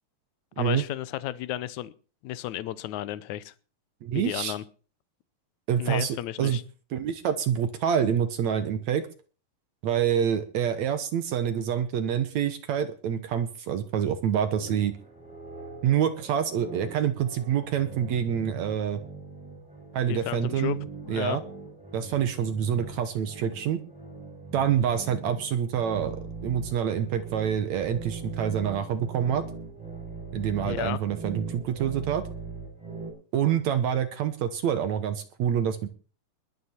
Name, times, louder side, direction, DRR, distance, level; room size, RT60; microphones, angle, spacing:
voice 1, 0.6-1.9 2.2-3.5 4.1-4.6 5.8-6.6 20.1-20.8 21.0-21.4 30.6-31.0, left 14 dB, 75° left, 16 dB, 1.8 m, -33 dB
voice 2, 4.0-4.5 5.7-6.6 6.9-9.1 9.8-14.9 15.8-19.0 19.9-20.8 21.1-21.4 21.9-23.8 24.5-26.2 26.4-29.4 30.3-32.2 33.3-35.9, right 9 dB, 65° right, 10 dB, 1.9 m, -27 dB
sound 1, 14.6-33.1, right 3 dB, ahead, 6.1 m, -41 dB
21.0 x 9.3 x 4.4 m, 0.39 s
omnidirectional pair, 4.2 m